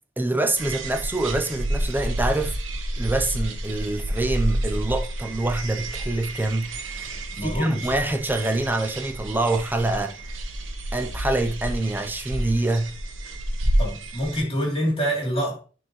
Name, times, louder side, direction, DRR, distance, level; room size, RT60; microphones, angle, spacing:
voice 1, 0.2-2.6 3.0-7.1 7.4-10.1 10.9-12.9, right 2 dB, 10° right, 0.7 m, -25 dB
sound 1, 0.6-14.4, right 1 dB, 85° right, 1.2 m, -30 dB
voice 2, 7.3-7.9 13.8-15.6, equal, 30° left, 3.2 m, -25 dB
10.5 x 4.5 x 3.1 m
head